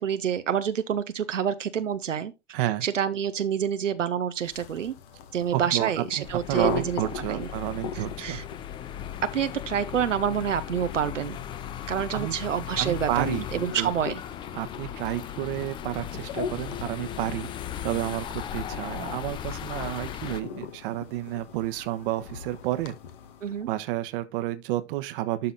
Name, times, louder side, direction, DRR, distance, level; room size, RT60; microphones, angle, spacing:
voice 1, 0.0-2.3 2.8-4.9 5.3-7.0 7.3-7.5 7.9-8.4 9.3-11.4 11.9-13.3 13.5-14.2 23.4-23.7, right 8 dB, 85° right, 0.9 m, -27 dB
voice 2, 2.5-2.8 5.5-5.9 6.2-8.4 12.1-12.3 12.8-13.9 14.5-17.5 17.8-22.9 23.6-25.5, right 15 dB, 45° right, 1.1 m, -30 dB
sound 1, 4.4-23.7, left 8 dB, 50° left, 1.8 m, -40 dB
sound 2, 6.2-20.4, left 10 dB, 15° left, 0.4 m, -37 dB
12.0 x 4.2 x 3.9 m
hypercardioid pair, 115°, 37 cm